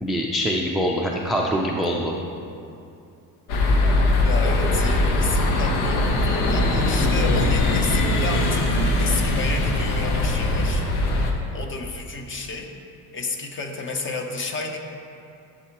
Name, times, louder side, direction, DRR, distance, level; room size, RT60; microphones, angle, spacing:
voice 1, 0.0-2.1, equal, ahead, -1 dB, 0.4 m, -24 dB
sound 1, 3.5-11.3, left 2 dB, 85° left, 1.1 m, -21 dB
voice 2, 4.2-10.9 11.5-12.7 13.1-14.8, left 3 dB, 30° left, 4 dB, 0.7 m, -31 dB
11.5 x 7.4 x 2.9 m, 2.5 s
cardioid pair, 150°, 39 cm